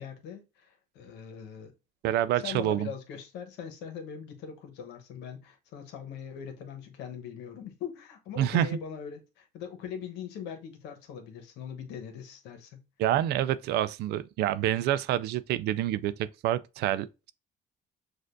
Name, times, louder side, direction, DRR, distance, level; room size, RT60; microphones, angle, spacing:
voice 1, 0.0-1.7 2.4-12.8, left 7 dB, 90° left, 1.0 m, -41 dB
voice 2, 2.0-2.9 8.4-8.7 13.0-17.3, right 12 dB, 75° right, 0.4 m, -27 dB
6.5 x 2.5 x 2.5 m
cardioid pair, 110°, 17 cm